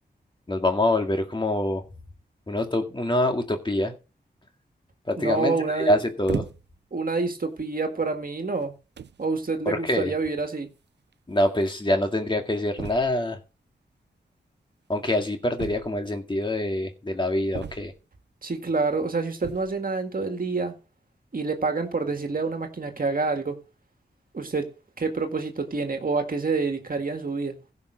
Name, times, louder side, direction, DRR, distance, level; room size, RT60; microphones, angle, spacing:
voice 1, 0.5-1.8 2.5-3.9 5.1-6.5 9.7-10.1 11.3-13.4 14.9-17.9, left 1 dB, 25° left, 2.1 m, -25 dB
voice 2, 5.2-5.9 6.9-8.7 9.2-10.7 18.4-20.7 21.3-23.6 24.3-27.6, right 3 dB, 50° right, 1.9 m, -27 dB
sound 1, 6.3-6.9 7.6-7.8 8.6-8.7 9.0-9.3 10.5-10.6 10.8-10.9 11.1-11.2 12.8-13.3 15.6-16.2 17.5-18.2 19.3-19.8, right 7 dB, 75° right, 0.5 m, -36 dB
16.0 x 5.6 x 5.2 m
wide cardioid pair, 85°, 18 cm